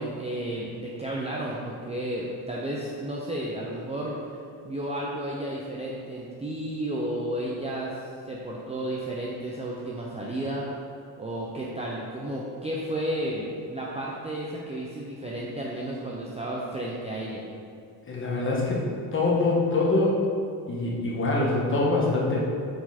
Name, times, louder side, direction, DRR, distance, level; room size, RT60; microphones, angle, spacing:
voice 1, 0.0-4.2 4.6-8.0 8.3-10.7 11.2-17.5, right 1 dB, 15° right, -4 dB, 0.5 m, -32 dB
voice 2, 18.1-18.8 19.1-20.2 20.7-22.4, left 2 dB, 25° left, -4 dB, 1.3 m, -24 dB
6.3 x 4.5 x 4.2 m, 2.3 s
cardioid pair, 140°, 47 cm